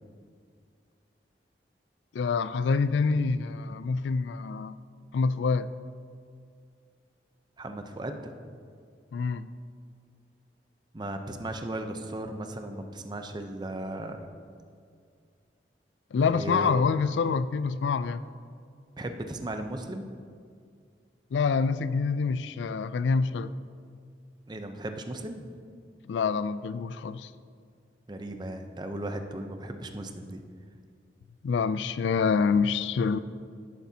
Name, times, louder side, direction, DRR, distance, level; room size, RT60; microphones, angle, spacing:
voice 1, 2.1-4.8 5.1-5.7 9.1-9.5 16.1-18.2 21.3-23.5 26.1-27.3 31.4-33.2, left 5 dB, 90° left, 0.3 m, -26 dB
voice 2, 7.6-8.3 10.9-14.3 16.3-16.8 19.0-20.1 24.5-25.4 28.1-30.4, right 1 dB, 25° right, 0.6 m, -36 dB
11.5 x 11.0 x 2.8 m
head